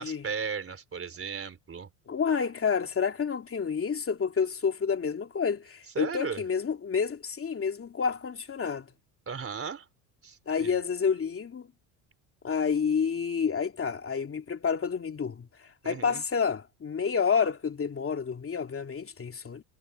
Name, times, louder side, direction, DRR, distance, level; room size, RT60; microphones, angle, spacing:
voice 1, 0.0-1.9 6.0-6.4 9.3-9.9 10.2-10.7 15.8-16.2, right 6 dB, 30° right, 4.0 m, -36 dB
voice 2, 2.1-8.9 10.5-11.7 12.4-19.6, left 6 dB, 30° left, 2.8 m, -29 dB
supercardioid pair, 90°, 43 cm